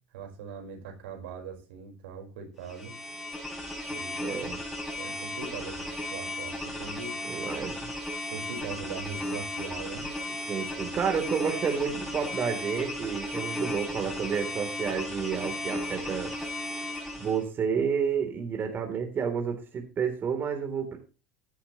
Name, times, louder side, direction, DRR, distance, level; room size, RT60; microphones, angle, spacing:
voice 1, 0.1-2.9 3.9-4.3 5.0-7.4 8.3-10.1, right 5 dB, 85° right, 2 dB, 4.8 m, -41 dB
sound 1, 2.6-17.4, left 1 dB, ahead, 6.3 m, -35 dB
voice 2, 4.2-4.6 7.2-7.9 10.5-16.3 17.2-21.0, right 7 dB, 35° right, 4 dB, 3.4 m, -30 dB
15.0 x 10.0 x 3.1 m, 0.33 s
supercardioid pair, 105°, 6 cm